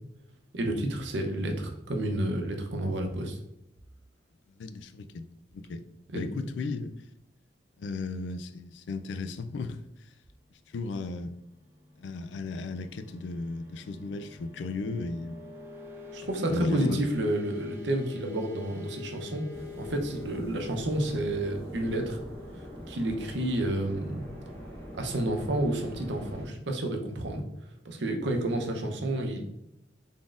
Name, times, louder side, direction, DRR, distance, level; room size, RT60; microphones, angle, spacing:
voice 1, 0.5-3.4 6.1-6.4 16.1-19.4 19.8-22.2 22.9-24.3 25.0-27.4 27.8-29.5, right 1 dB, 80° right, 0.7 m, -30 dB
voice 2, 4.6-5.8 6.1-6.9 7.8-10.1 10.7-11.4 12.0-15.4 16.5-17.0, left 3 dB, 85° left, 0.4 m, -35 dB
sound 1, 11.3-23.8, left 6 dB, 10° right, 0.4 m, -46 dB
sound 2, 19.5-26.5, equal, 15° left, 1.3 m, -43 dB
3.9 x 3.6 x 2.4 m
head